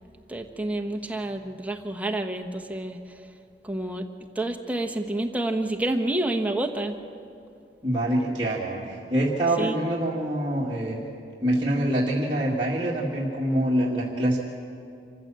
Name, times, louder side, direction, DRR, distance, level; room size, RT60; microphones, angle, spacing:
voice 1, 0.3-3.2 3.6-4.1 4.3-7.0 9.6-9.8, right 1 dB, 10° right, 5 dB, 1.1 m, -29 dB
voice 2, 7.8-11.0 11.4-14.4, right 1 dB, 25° right, -6 dB, 2.1 m, -25 dB
26.5 x 15.0 x 7.6 m, 2.5 s
head